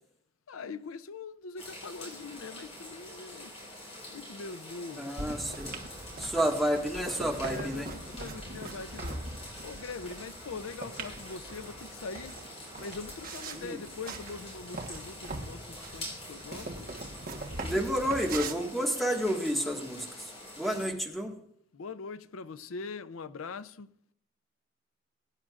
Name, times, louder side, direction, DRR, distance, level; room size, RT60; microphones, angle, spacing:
voice 1, 0.5-3.5 4.1-5.1 7.4-9.2 9.6-12.3 12.8-16.9 21.7-23.9, left 4 dB, 85° left, 0.5 m, -42 dB
sound 1, 1.6-20.9, left 1 dB, 30° left, 5.1 m, -46 dB
voice 2, 5.0-5.8 6.2-7.9 13.5-13.8 17.6-20.3 20.5-21.3, equal, ahead, 1.7 m, -30 dB
sound 2, 5.2-18.5, right 2 dB, 45° right, 1.3 m, -42 dB
22.5 x 10.0 x 2.5 m
head